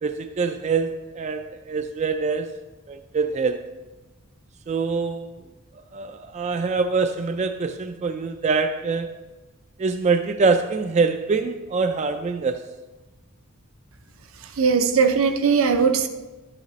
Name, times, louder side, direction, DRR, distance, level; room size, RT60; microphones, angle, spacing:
voice 1, 0.0-2.5 2.9-3.7 4.7-5.3 5.9-9.1 9.8-12.6, right 4 dB, 30° right, 7 dB, 0.3 m, -24 dB
voice 2, 14.6-16.1, right 5 dB, 75° right, 7 dB, 0.6 m, -19 dB
11.0 x 8.0 x 3.1 m, 1.2 s
head